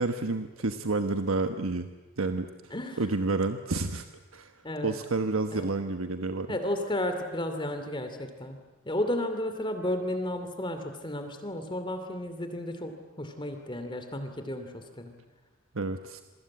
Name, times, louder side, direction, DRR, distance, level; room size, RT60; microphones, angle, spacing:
voice 1, 0.0-1.9 2.2-4.1 4.3-4.5 4.8-6.6 15.7-16.2, right 3 dB, 85° right, 8 dB, 1.2 m, -30 dB
voice 2, 2.7-3.0 4.6-4.9 5.5-5.7 6.5-8.6 8.8-15.1, left 1 dB, 25° left, 7 dB, 2.6 m, -33 dB
28.0 x 23.5 x 8.7 m, 1.2 s
head